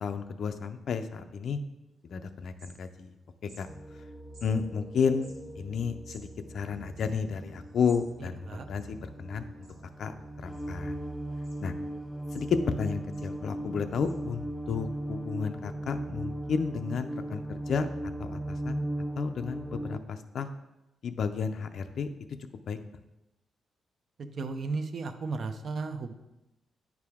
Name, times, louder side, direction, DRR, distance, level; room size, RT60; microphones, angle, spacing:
voice 1, 0.0-1.6 2.1-3.1 3.6-3.7 4.4-6.3 6.5-9.5 10.0-10.9 11.6-11.7 12.3-18.8 19.2-20.5 21.0-22.1 22.7-22.8, left 6 dB, 55° left, 8 dB, 0.5 m, -32 dB
sound 1, 2.0-2.1 2.4-3.2 3.4-3.6 4.3-4.5 5.1-8.1 8.4-8.5 8.6-9.3 9.6-10.0 10.5-11.0 11.4-11.6 12.0-12.8 13.1-13.3 14.0-14.1, right 2 dB, 75° right, 2.3 m, -57 dB
sound 2, 3.7-20.0, right 1 dB, ahead, 0.4 m, -38 dB
voice 2, 24.2-26.1, right 4 dB, 45° right, 8 dB, 0.6 m, -34 dB
9.2 x 4.8 x 3.6 m, 0.94 s
wide cardioid pair, 150°, 0 cm